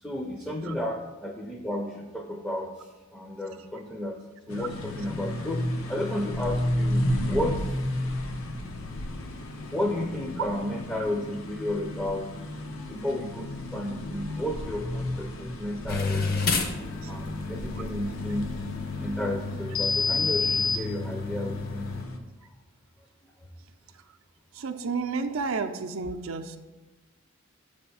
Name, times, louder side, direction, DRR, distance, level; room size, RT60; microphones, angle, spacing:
voice 1, 0.0-2.7 3.1-4.2 4.5-7.8 9.7-12.3 12.8-16.3 17.1-18.5 19.0-21.9, left 1 dB, 5° left, 1 dB, 0.4 m, -32 dB
sound 1, 4.5-22.2, left 1 dB, 85° left, 0.8 m, -33 dB
sound 2, 15.9-22.0, left 4 dB, 45° left, 0.7 m, -29 dB
voice 2, 24.6-26.6, right 4 dB, 75° right, 6 dB, 0.5 m, -31 dB
7.0 x 3.4 x 5.4 m, 1.1 s
head